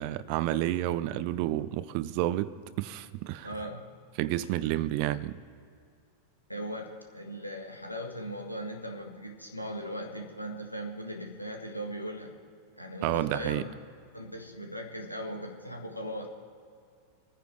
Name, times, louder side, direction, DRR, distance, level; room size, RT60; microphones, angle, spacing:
voice 1, 0.0-2.5 2.8-3.5 4.2-5.4 13.0-13.7, right 14 dB, 45° right, 0.7 m, -30 dB
voice 2, 3.4-3.9 6.5-12.4 12.8-13.7 14.1-16.3, equal, 90° left, 1.6 m, -38 dB
27.0 x 10.0 x 3.3 m
figure-of-eight pair, 90°, 0 cm